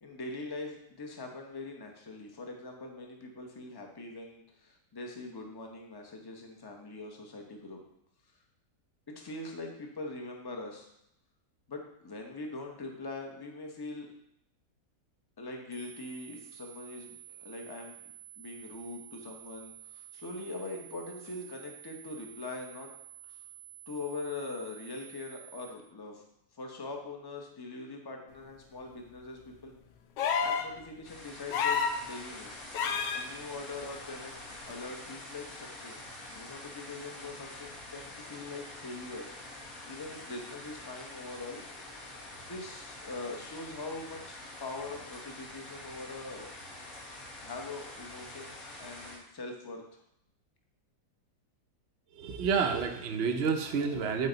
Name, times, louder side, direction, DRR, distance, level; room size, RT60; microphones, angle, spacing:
voice 1, 0.0-7.8 9.1-10.9 11.7-14.1 15.4-17.9 18.4-22.9 23.3-23.4 23.9-26.2 26.5-29.7 30.4-32.5 33.1-36.0 36.3-41.6 42.5-46.5 47.4-49.8, left 3 dB, 25° left, 2 dB, 0.5 m, -42 dB
sound 1, 15.7-25.7, right 12 dB, 85° right, 1.3 m, -51 dB
sound 2, 30.2-30.7 31.5-32.0 32.7-33.2 34.7-34.8, left 6 dB, 80° left, 1.2 m, -29 dB
sound 3, 31.0-49.2, left 2 dB, 55° left, 1.9 m, -46 dB
voice 2, 52.2-54.3, right 5 dB, 60° right, 3 dB, 0.7 m, -29 dB
8.6 x 4.3 x 3.9 m, 0.78 s
omnidirectional pair, 1.8 m